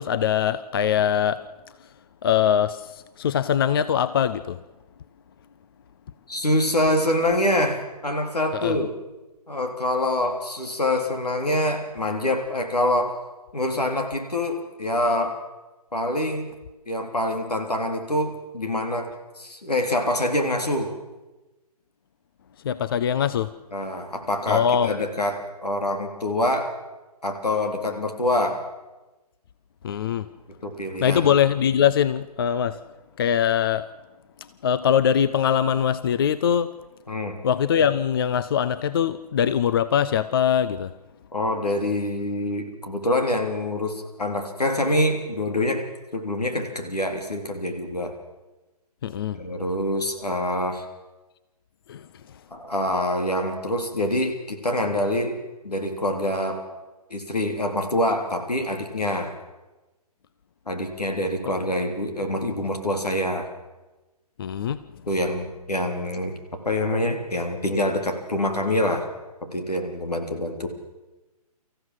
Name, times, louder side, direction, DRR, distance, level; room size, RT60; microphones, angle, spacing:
voice 1, 0.0-1.5 1.8-1.9 2.2-4.6 8.5-8.8 22.6-23.5 24.5-24.9 29.8-30.3 31.0-32.8 33.2-33.9 34.6-36.7 37.4-40.9 49.0-49.4 51.9-52.1 64.4-64.8, left 8 dB, 35° left, 14 dB, 0.6 m, -22 dB
voice 2, 6.3-8.9 9.5-13.2 13.5-15.4 15.9-16.5 16.9-20.9 23.7-26.7 27.2-28.6 30.6-31.2 37.1-37.4 41.3-45.8 46.1-48.1 49.3-50.9 52.5-55.3 55.6-56.6 57.1-59.3 60.7-63.5 65.1-66.3 66.6-69.0 69.4-70.7, left 1 dB, 80° left, 4 dB, 3.4 m, -25 dB
24.5 x 15.0 x 7.5 m, 1.1 s
figure-of-eight pair, 135°, 20 cm